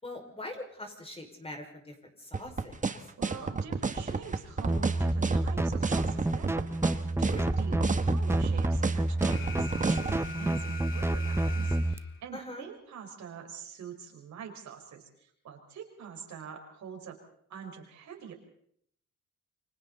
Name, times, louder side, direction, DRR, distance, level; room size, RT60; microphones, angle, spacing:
voice 1, 0.0-2.8 7.2-7.5 12.3-12.7, left 1 dB, 20° left, 3 dB, 5.5 m, -42 dB
sound 1, 2.3-10.2, right 4 dB, 25° right, 1.6 m, -30 dB
voice 2, 3.2-17.2 17.5-18.3, right 7 dB, 65° right, 2 dB, 5.4 m, -45 dB
sound 2, 4.7-12.0, right 2 dB, 10° right, 1.1 m, -29 dB
Alarm, 9.3-12.3, left 3 dB, 40° left, 2.9 m, -42 dB
29.0 x 24.0 x 4.1 m, 0.67 s
cardioid pair, 90°, 30 cm